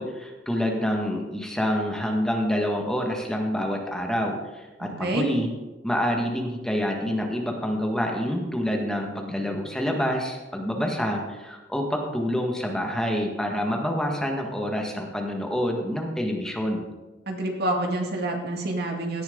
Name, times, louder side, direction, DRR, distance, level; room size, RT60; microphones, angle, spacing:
voice 1, 0.0-5.5 5.8-16.8, equal, 5° left, 1 dB, 1.7 m, -27 dB
voice 2, 4.8-5.3 17.3-19.2, right 1 dB, 60° right, 1 dB, 2.4 m, -27 dB
17.0 x 10.5 x 3.9 m, 1.1 s
head